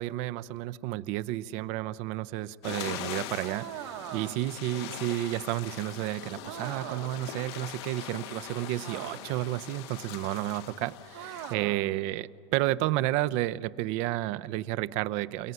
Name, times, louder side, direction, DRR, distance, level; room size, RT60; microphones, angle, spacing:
voice 1, 0.0-15.5, right 15 dB, 50° right, 16 dB, 0.7 m, -31 dB
sound 1, 2.6-11.5, left 12 dB, 70° left, 1.5 m, -42 dB
sound 2, 3.4-4.6 6.4-7.3 8.8-9.5 11.1-11.9, right 13 dB, 85° right, 1.6 m, -41 dB
28.5 x 18.0 x 9.6 m, 2.2 s
supercardioid pair, 165°, 14 cm